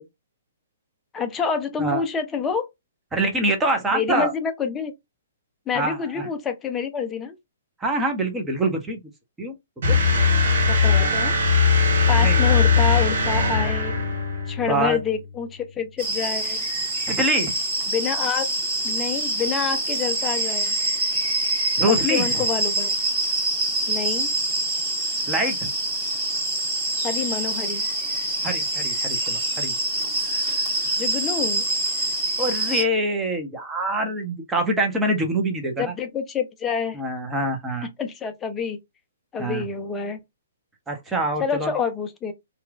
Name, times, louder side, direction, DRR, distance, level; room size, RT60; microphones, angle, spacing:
voice 1, 1.1-2.7 3.9-4.9 5.7-7.3 10.7-11.4 12.1-14.0 14.5-16.6 17.9-18.5 18.8-20.7 21.9-22.9 23.9-24.3 27.0-27.8 31.0-31.7 35.8-37.0 38.0-38.8 39.3-40.2 41.4-42.3, left 6 dB, 15° left, 0.6 m, -27 dB
voice 2, 3.1-4.3 5.7-6.3 7.8-9.0 9.4-9.5 9.9-10.0 10.9-11.3 12.2-12.6 14.7-15.0 17.1-17.5 21.8-22.5 25.3-25.7 28.4-29.8 32.4-35.9 36.9-37.9 39.4-39.6 40.9-41.7, right 1 dB, 10° right, 0.9 m, -25 dB
sound 1, 9.8-14.5, left 4 dB, 60° right, 1.3 m, -19 dB
Bowed string instrument, 11.6-16.1, left 5 dB, 65° left, 0.7 m, -32 dB
sound 2, 16.0-32.8, right 2 dB, 35° right, 1.6 m, -25 dB
2.8 x 2.4 x 2.4 m
hypercardioid pair, 130°, 0 cm